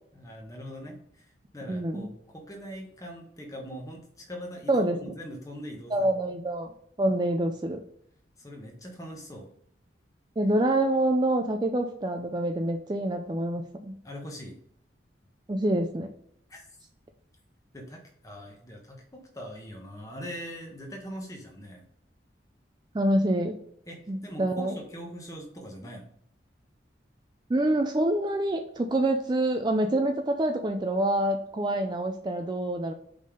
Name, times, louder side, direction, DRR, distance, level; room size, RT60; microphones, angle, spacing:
voice 1, 0.1-1.3 1.5-6.1 8.4-9.5 14.0-14.6 16.5-16.6 17.7-21.8 23.9-26.0, equal, 20° left, 1 dB, 1.1 m, -42 dB
voice 2, 1.7-2.1 4.7-5.0 5.9-6.7 7.0-7.8 10.4-14.0 15.5-16.1 22.9-23.6 24.1-24.8 27.5-32.9, right 1 dB, 25° right, 5 dB, 0.4 m, -26 dB
5.2 x 3.7 x 5.1 m, 0.67 s
head